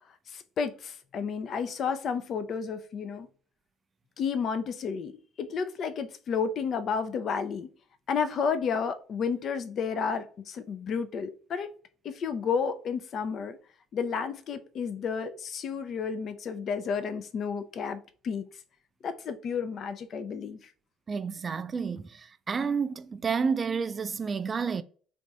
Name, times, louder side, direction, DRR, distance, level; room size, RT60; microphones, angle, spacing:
voice 1, 0.3-3.3 4.2-7.7 8.1-11.7 12.0-13.6 13.9-18.5 19.0-20.6, left 6 dB, 55° left, 0.5 m, -31 dB
voice 2, 21.1-24.8, right 5 dB, 35° right, 0.3 m, -30 dB
3.5 x 2.6 x 3.1 m
hypercardioid pair, 65°, 0 cm